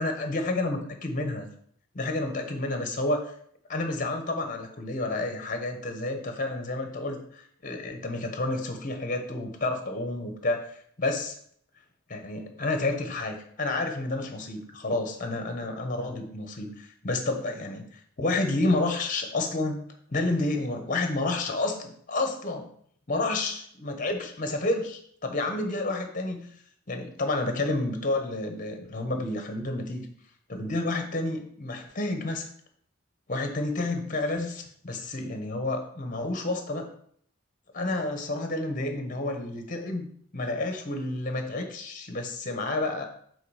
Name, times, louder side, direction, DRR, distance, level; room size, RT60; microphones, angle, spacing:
voice 1, 0.0-1.5 1.9-3.3 3.7-10.7 11.0-11.4 12.1-17.9 18.2-19.8 20.1-22.7 23.1-26.5 26.9-30.1 30.5-32.5 33.3-36.9 37.7-40.1 40.3-43.0, left 2 dB, 40° left, 5 dB, 1.1 m, -30 dB
7.7 x 3.9 x 4.9 m, 0.63 s
head